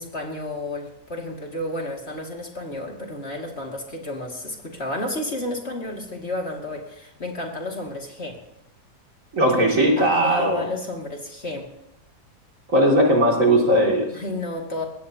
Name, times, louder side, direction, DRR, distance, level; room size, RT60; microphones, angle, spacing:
voice 1, 0.0-8.4 9.5-9.7 10.0-11.7 14.1-14.9, left 1 dB, 40° left, 1 dB, 2.4 m, -31 dB
voice 2, 9.3-10.6 12.7-14.1, right 1 dB, 50° right, 0 dB, 3.0 m, -18 dB
22.0 x 16.5 x 2.8 m, 0.84 s
omnidirectional pair, 1.7 m